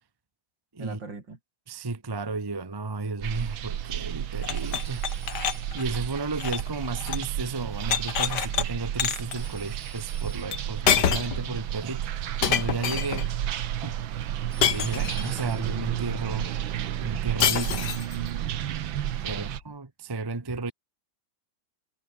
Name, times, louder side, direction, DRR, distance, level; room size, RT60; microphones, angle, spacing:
voice 1, 0.8-1.4 19.1-19.6, right 4 dB, 70° right, 4.7 m, -41 dB
voice 2, 1.7-5.4 5.7-13.3 13.8-14.0 14.6-16.5 17.0-18.0 19.2-20.7, right 3 dB, 15° right, 0.9 m, -33 dB
sound 1, 3.2-19.6, right 11 dB, 90° right, 1.9 m, -32 dB
sound 2, 4.4-7.3 7.6-8.7 9.0-9.4 10.5-10.6 10.9-11.4 12.4-13.3 14.6-15.4 17.4-18.1, left 8 dB, 60° left, 1.9 m, -27 dB
Telephone, 4.5-6.0 9.4-10.8 14.5-15.9, right 3 dB, 45° right, 4.8 m, -51 dB
omnidirectional pair, 2.1 m